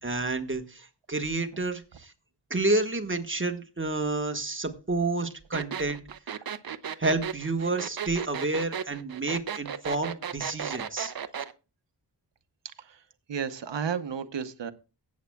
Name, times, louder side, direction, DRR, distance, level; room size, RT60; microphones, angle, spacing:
voice 1, 0.0-2.1 2.5-6.0 7.0-11.1, right 2 dB, 30° right, 5 dB, 1.4 m, -29 dB
sound 1, 5.5-11.5, right 8 dB, 55° right, 0.7 m, -34 dB
voice 2, 13.3-14.7, right 7 dB, 90° right, 11 dB, 0.9 m, -32 dB
18.0 x 8.6 x 2.2 m, 0.32 s
wide cardioid pair, 80°, 42 cm